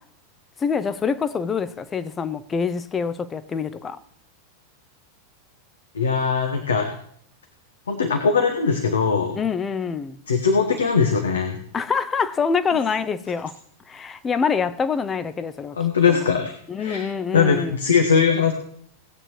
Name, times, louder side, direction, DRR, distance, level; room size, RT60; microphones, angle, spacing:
voice 1, 0.6-4.0 9.3-10.2 11.7-13.5 13.9-15.8 16.1-16.3 16.7-17.7, left 6 dB, 20° left, 0.7 m, -25 dB
voice 2, 5.9-6.9 7.9-9.4 10.3-11.6 15.7-16.5 16.8-17.1 17.3-18.5, left 5 dB, 70° left, 1.2 m, -20 dB
18.0 x 8.9 x 3.1 m
figure-of-eight pair, 90°, 0 cm